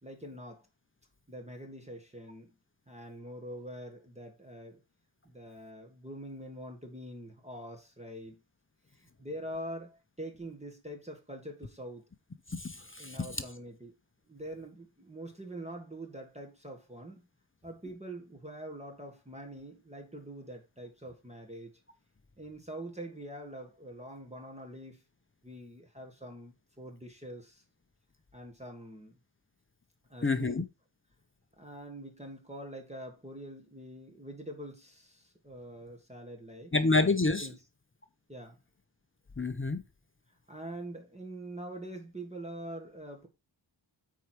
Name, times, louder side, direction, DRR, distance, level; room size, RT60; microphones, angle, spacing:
voice 1, 0.0-0.7 1.3-2.5 2.9-4.8 5.2-8.4 9.0-12.0 13.0-13.9 14.3-17.3 17.6-21.7 22.4-25.0 25.4-27.6 28.3-29.2 30.1-30.6 31.6-36.7 37.4-37.6 38.3-38.6 40.5-43.3, right 1 dB, 15° right, 1.7 m, -44 dB
voice 2, 12.5-13.2 30.2-30.6 36.7-37.5 39.4-39.8, left 3 dB, 25° left, 0.8 m, -28 dB
8.2 x 4.8 x 4.5 m
wide cardioid pair, 95°, 47 cm